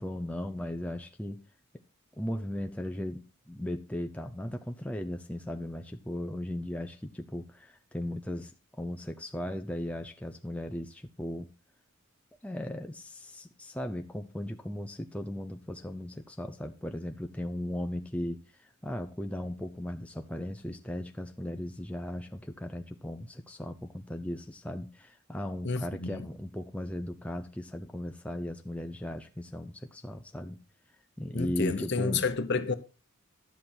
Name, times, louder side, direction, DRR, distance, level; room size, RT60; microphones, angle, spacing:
voice 1, 0.0-1.4 2.2-8.5 8.8-11.5 12.4-30.6 31.2-32.3, left 1 dB, 5° left, 0.6 m, -37 dB
voice 2, 25.6-26.2 31.3-32.7, left 4 dB, 50° left, 1.0 m, -30 dB
11.5 x 7.7 x 4.4 m
head